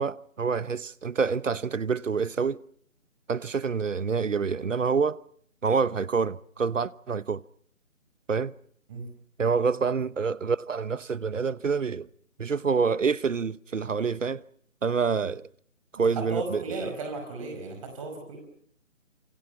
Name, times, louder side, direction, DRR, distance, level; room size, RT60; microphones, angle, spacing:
voice 1, 0.0-2.6 3.3-5.2 5.6-7.4 8.3-8.5 9.4-12.1 12.4-14.4 14.8-15.5 15.9-16.9, right 5 dB, 70° right, 1.0 m, -27 dB
voice 2, 16.0-18.4, right 3 dB, 25° right, 5.2 m, -35 dB
28.5 x 25.0 x 6.0 m
figure-of-eight pair, 155°, 39 cm